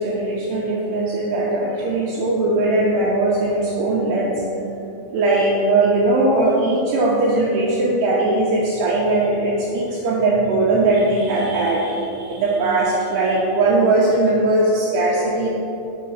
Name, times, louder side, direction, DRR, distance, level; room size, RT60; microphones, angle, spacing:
voice 1, 0.0-4.4 5.1-15.5, right 2 dB, 75° right, -6 dB, 2.7 m, -19 dB
7.4 x 5.0 x 5.7 m, 2.9 s
omnidirectional pair, 5.3 m